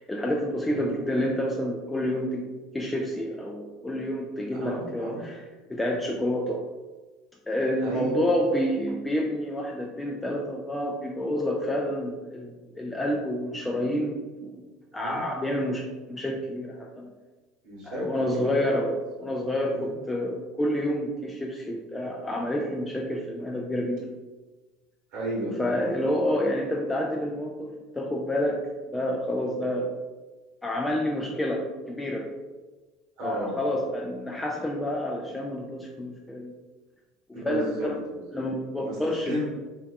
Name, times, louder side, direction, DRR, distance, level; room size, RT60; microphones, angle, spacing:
voice 1, 0.0-5.4 5.7-6.6 7.5-14.7 14.9-17.1 17.8-24.1 25.5-30.0 30.6-32.3 33.2-36.5 37.3-38.0 38.3-39.4, left 1 dB, 10° left, 0 dB, 0.3 m, -29 dB
voice 2, 4.5-5.2 7.8-8.3 14.9-15.2 17.6-18.7 19.3-19.4 19.7-19.9 25.1-26.2 33.2-33.5 37.3-38.5 38.8-39.5, right 1 dB, 70° right, -4 dB, 1.3 m, -34 dB
2.7 x 2.2 x 3.7 m, 1.2 s
hypercardioid pair, 90°, 0 cm